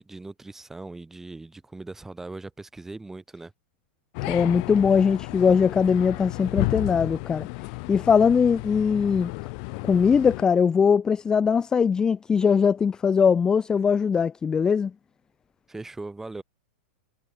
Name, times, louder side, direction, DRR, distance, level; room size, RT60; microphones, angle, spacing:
voice 1, 0.0-3.5 15.7-16.4, right 2 dB, 5° right, 1.9 m, -39 dB
sound 1, 4.1-10.4, left 35 dB, 40° left, 1.8 m, -33 dB
voice 2, 4.3-7.5 7.9-9.3 9.8-14.9, left 6 dB, 10° left, 0.3 m, -21 dB
supercardioid pair, 160°, 7 cm